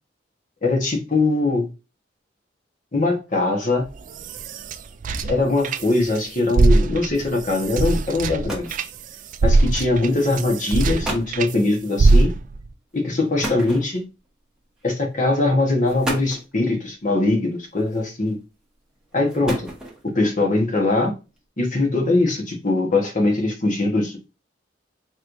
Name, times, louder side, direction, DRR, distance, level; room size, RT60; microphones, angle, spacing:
voice 1, 0.6-1.7 2.9-3.8 5.3-8.8 9.4-12.3 12.9-14.1 14.8-18.4 19.1-19.7 20.0-21.1 21.6-24.2, left 2 dB, 45° left, 1.2 m, -21 dB
sound 1, 3.9-6.2 6.5-11.6 12.0-12.7, right 3 dB, 45° right, 0.3 m, -21 dB
sound 2, 8.2-8.9 9.8-10.1 10.7-10.8 11.0-11.4 13.4-14.3 15.2-15.3 15.8-16.5 17.8-18.3 19.1-20.1, right 1 dB, 5° right, 1.1 m, -31 dB
4.5 x 3.2 x 2.6 m
head